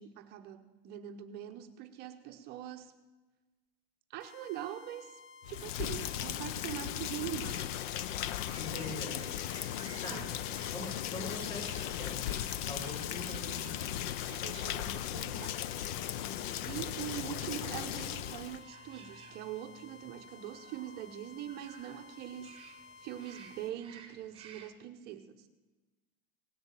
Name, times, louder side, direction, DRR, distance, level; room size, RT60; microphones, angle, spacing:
voice 1, 0.0-2.9 4.1-5.2 5.5-7.7 10.1-10.3 14.3-15.6 16.7-22.7 23.0-25.5, right 12 dB, 35° right, 6 dB, 0.8 m, -43 dB
sound 1, 4.2-23.7, left 4 dB, 30° left, 1.2 m, -55 dB
Rain, 5.4-18.6, left 12 dB, 50° left, 0.5 m, -37 dB
sound 2, 8.4-24.7, right 7 dB, 15° right, 1.2 m, -57 dB
voice 2, 8.5-9.2 10.0-10.3 10.7-13.9, left 2 dB, 70° left, 0 dB, 5.9 m, -43 dB
17.5 x 7.0 x 9.0 m, 1.2 s
supercardioid pair, 160°, 31 cm